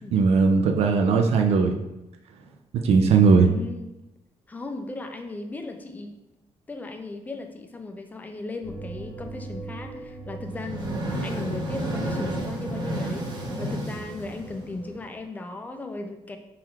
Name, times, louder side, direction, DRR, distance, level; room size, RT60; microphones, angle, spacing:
voice 1, 0.1-1.8 2.7-3.5, right 5 dB, 65° right, 4 dB, 0.4 m, -18 dB
voice 2, 3.4-3.9 4.5-6.1 6.7-16.4, left 2 dB, 15° left, 5 dB, 0.4 m, -36 dB
sound 1, 8.6-14.9, right 3 dB, 35° left, 0.9 m, -41 dB
sound 2, 10.5-15.0, right 1 dB, 40° right, 0.9 m, -31 dB
3.8 x 2.9 x 4.4 m, 0.97 s
cardioid pair, 165°, 11 cm